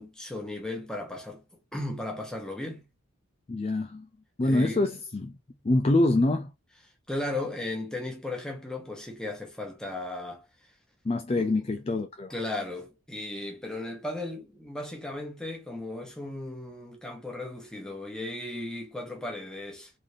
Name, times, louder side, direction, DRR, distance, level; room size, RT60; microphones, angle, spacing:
voice 1, 0.0-1.4 1.7-2.9 4.4-4.9 7.1-10.4 11.3-11.5 12.3-19.9, left 2 dB, 5° left, 1.3 m, -36 dB
voice 2, 3.5-4.1 4.4-5.4 5.6-6.5 11.0-12.3, left 2 dB, 30° left, 0.4 m, -25 dB
4.0 x 3.6 x 3.3 m
head